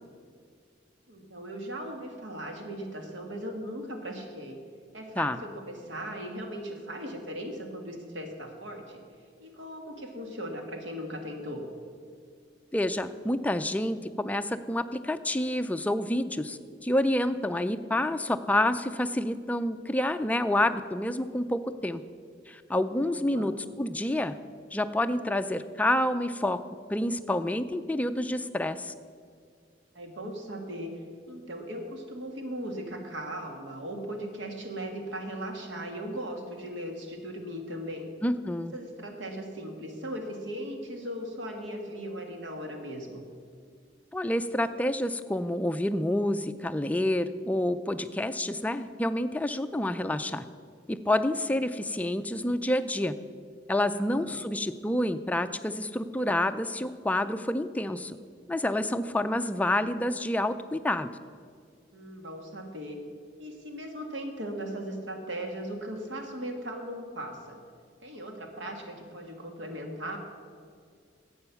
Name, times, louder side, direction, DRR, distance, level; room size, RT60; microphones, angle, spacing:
voice 1, 1.1-4.6 4.9-9.0 9.4-11.6 23.1-23.5 30.0-38.1 38.7-43.2 53.9-54.4 61.9-63.0 63.4-67.6 68.0-70.2, equal, 85° right, 3 dB, 1.7 m, -38 dB
voice 2, 12.7-22.0 22.5-24.3 24.7-26.6 26.9-28.9 38.2-38.7 44.1-50.4 50.9-53.1 53.7-58.2 58.5-61.1, left 1 dB, 10° left, 9 dB, 0.4 m, -28 dB
11.5 x 7.8 x 6.9 m, 2.2 s
head